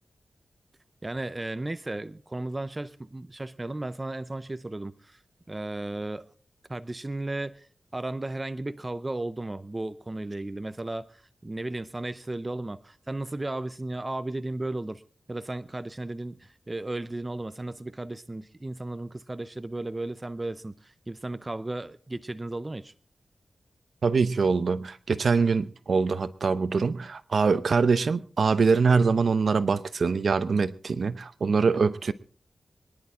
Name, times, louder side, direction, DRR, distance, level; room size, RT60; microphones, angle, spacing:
voice 1, 1.0-5.2 5.5-6.2 6.7-7.7 7.9-15.0 15.3-22.9, right 2 dB, 20° right, 0.6 m, -35 dB
voice 2, 24.0-32.1, right 5 dB, 65° right, 0.7 m, -24 dB
25.5 x 10.5 x 3.7 m
wide cardioid pair, 110°, 0 cm